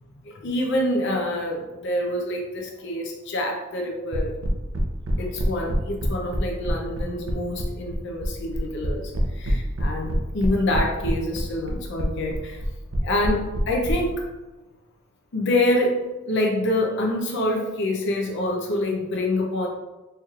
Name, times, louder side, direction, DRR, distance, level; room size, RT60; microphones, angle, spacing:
voice 1, 0.2-4.3 5.2-12.6 13.0-14.3 15.3-19.7, left 1 dB, 60° left, 0 dB, 0.5 m, -26 dB
sound 1, 4.1-13.9, equal, 70° right, 0.6 m, -26 dB
4.4 x 3.1 x 2.3 m, 1.1 s
head